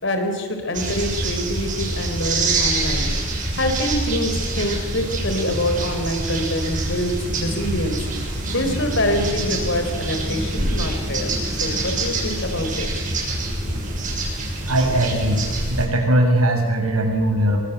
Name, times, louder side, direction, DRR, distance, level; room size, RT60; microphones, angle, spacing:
voice 1, 0.0-3.1 3.6-8.0 8.5-11.3 11.6-12.9, left 1 dB, 60° left, 6 dB, 4.1 m, -25 dB
sound 1, 0.7-15.8, right 2 dB, 35° right, 6.8 m, -25 dB
voice 2, 14.7-15.4 15.7-17.6, right 1 dB, 90° right, 3 dB, 6.5 m, -19 dB
27.0 x 23.5 x 8.1 m, 1.5 s
head